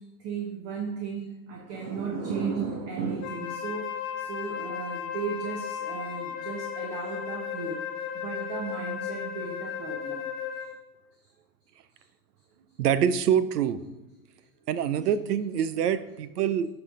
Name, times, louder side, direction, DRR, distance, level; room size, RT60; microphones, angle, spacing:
voice 1, 0.0-7.8 8.1-10.3 10.6-10.7 11.2-11.3 12.0-12.1, right 5 dB, 30° right, 2 dB, 1.1 m, -35 dB
Wind instrument woodwind instrument, 3.2-10.8, left 8 dB, 40° left, 1.3 m, -35 dB
voice 2, 12.8-13.8 14.7-16.7, right 8 dB, 85° right, 14 dB, 0.7 m, -25 dB
10.5 x 4.9 x 3.8 m, 1.1 s
hypercardioid pair, 125°, 46 cm